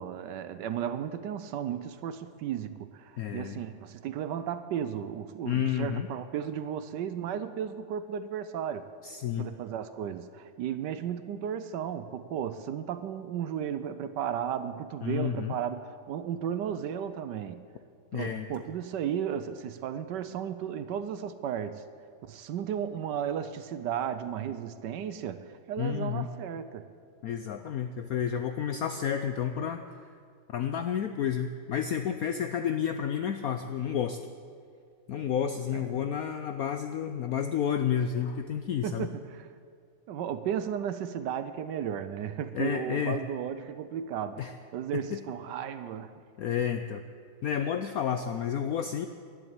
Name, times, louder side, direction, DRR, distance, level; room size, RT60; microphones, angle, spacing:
voice 1, 0.0-8.9 9.4-17.6 18.1-21.8 22.2-26.9 35.7-36.1 38.8-39.5 40.1-44.4 44.7-46.1, right 9 dB, 70° right, 12 dB, 1.1 m, -34 dB
voice 2, 3.2-3.6 5.4-6.1 9.0-9.5 15.0-15.6 18.1-18.5 25.8-26.3 27.2-29.8 30.5-34.2 35.1-39.1 42.5-43.2 44.4-44.5 44.9-45.2 46.4-47.0 47.4-49.1, left 8 dB, 85° left, 8 dB, 0.7 m, -30 dB
11.5 x 11.0 x 8.8 m, 2.2 s
omnidirectional pair, 2.2 m